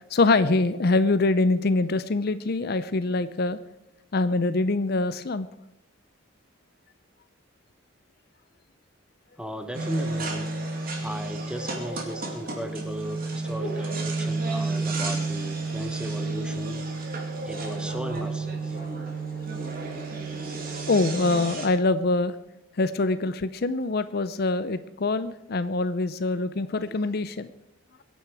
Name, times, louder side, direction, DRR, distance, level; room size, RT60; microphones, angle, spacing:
voice 1, 0.1-3.6 4.1-5.5 20.9-22.3 22.8-27.5, left 3 dB, 50° left, 13 dB, 0.5 m, -24 dB
voice 2, 9.4-10.5 11.0-16.8 17.4-18.8, equal, 5° right, 7 dB, 1.1 m, -36 dB
sound 1, 9.7-21.7, right 3 dB, 45° right, 2.6 m, -31 dB
23.0 x 9.2 x 4.9 m, 0.88 s
head